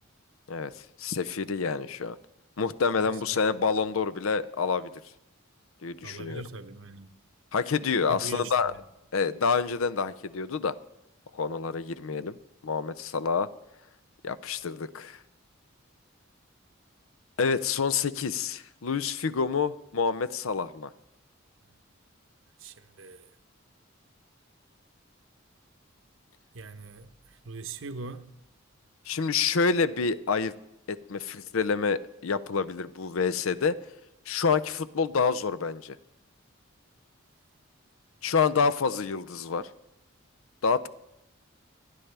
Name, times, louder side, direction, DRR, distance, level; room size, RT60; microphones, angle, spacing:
voice 1, 1.0-2.2 2.6-4.9 5.8-6.4 7.5-8.7 9.1-10.7 11.3-12.4 12.6-13.5 14.2-15.2 17.4-20.9 29.1-30.5 30.9-33.8 34.3-36.0 38.2-39.7 40.6-40.9, left 5 dB, 85° left, 0.6 m, -27 dB
voice 2, 3.0-3.4 6.0-7.1 8.1-8.8 22.6-23.3 26.5-28.2, right 3 dB, 70° right, 0.9 m, -41 dB
28.5 x 10.0 x 3.4 m
head